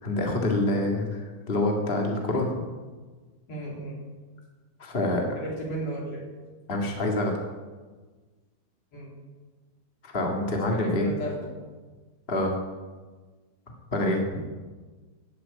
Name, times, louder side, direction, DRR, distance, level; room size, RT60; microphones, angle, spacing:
voice 1, 0.0-2.5 4.8-5.3 6.7-7.3 10.0-11.1 12.3-12.6 13.9-14.4, left 1 dB, 30° left, 1 dB, 1.1 m, -26 dB
voice 2, 3.5-4.0 5.3-6.3 8.9-9.1 10.7-11.5, right 1 dB, 45° left, -2 dB, 4.5 m, -34 dB
15.5 x 7.9 x 9.3 m, 1.3 s
omnidirectional pair, 4.3 m